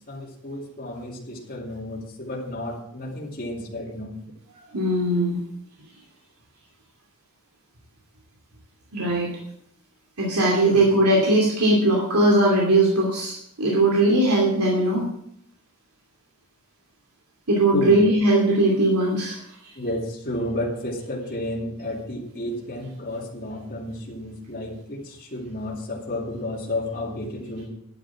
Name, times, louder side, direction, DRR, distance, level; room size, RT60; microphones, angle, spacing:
voice 1, 0.1-4.2 10.6-10.9 17.7-18.0 19.8-27.6, left 1 dB, 40° left, -4 dB, 2.8 m, -32 dB
voice 2, 4.7-5.4 8.9-9.3 10.2-15.1 17.5-19.4 19.6-19.7, right 1 dB, 90° right, -3 dB, 2.7 m, -19 dB
11.0 x 9.3 x 6.1 m, 0.73 s
head